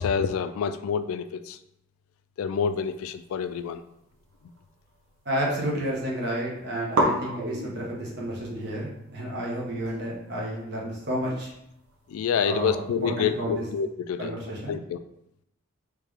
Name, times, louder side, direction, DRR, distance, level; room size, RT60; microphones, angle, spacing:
voice 1, 0.0-1.6 2.4-3.8 12.1-14.3 14.7-15.0, left 6 dB, 90° left, 12 dB, 0.3 m, -27 dB
sound 1, 3.4-5.2 5.5-6.1 6.4-6.5 6.9-13.7, right 1 dB, 75° right, 0.7 m, -34 dB
voice 2, 5.2-11.5 12.4-13.6 14.2-14.8, right 1 dB, 55° right, -3 dB, 1.1 m, -31 dB
3.3 x 3.3 x 3.5 m, 0.80 s
head